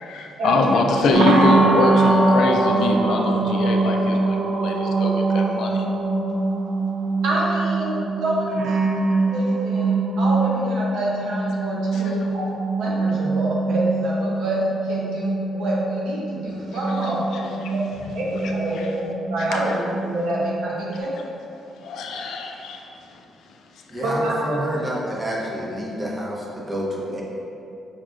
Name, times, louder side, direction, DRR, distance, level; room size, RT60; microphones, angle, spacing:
voice 1, 0.0-5.8 11.9-12.1 17.0-17.7 18.7-18.9 19.6-19.7 21.8-22.8, left 3 dB, 75° left, 2 dB, 0.3 m, -23 dB
sound 1, 1.1-20.9, right 3 dB, 65° right, 0.3 m, -23 dB
voice 2, 7.2-7.9 8.2-12.5 12.8-14.6 14.9-21.1 24.0-24.3, right 1 dB, 85° right, -5 dB, 0.7 m, -27 dB
voice 3, 23.9-27.2, equal, 25° right, -4 dB, 0.8 m, -28 dB
5.0 x 2.3 x 2.5 m, 2.8 s
cardioid pair, 90°, 0 cm